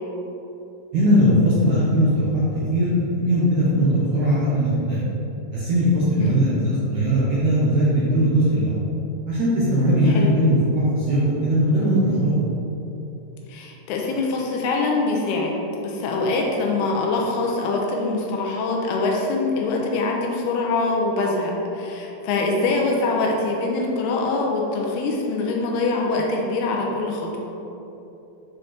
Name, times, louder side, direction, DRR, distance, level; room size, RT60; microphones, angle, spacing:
voice 1, 0.9-2.3 2.7-2.9 3.2-5.0 5.5-8.7 9.3-12.3, equal, 70° right, -9 dB, 1.9 m, -19 dB
voice 2, 13.5-15.5 15.8-27.5, left 3 dB, 85° left, 0 dB, 2.7 m, -24 dB
8.0 x 4.2 x 3.2 m, 3.0 s
omnidirectional pair, 4.6 m